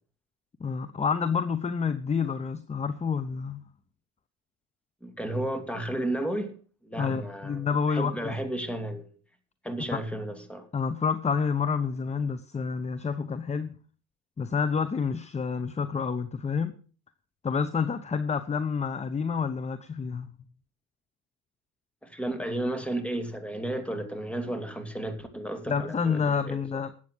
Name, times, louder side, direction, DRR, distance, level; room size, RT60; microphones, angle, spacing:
voice 1, 0.6-3.6 7.0-8.3 9.9-10.0 10.7-13.7 14.4-16.7 17.4-20.3 25.7-26.9, left 6 dB, 20° left, 0.8 m, -28 dB
voice 2, 5.0-6.5 6.8-9.1 9.6-10.7 22.0-26.6, right 1 dB, 5° left, 2.5 m, -33 dB
12.0 x 8.5 x 6.3 m
supercardioid pair, 100°, 34 cm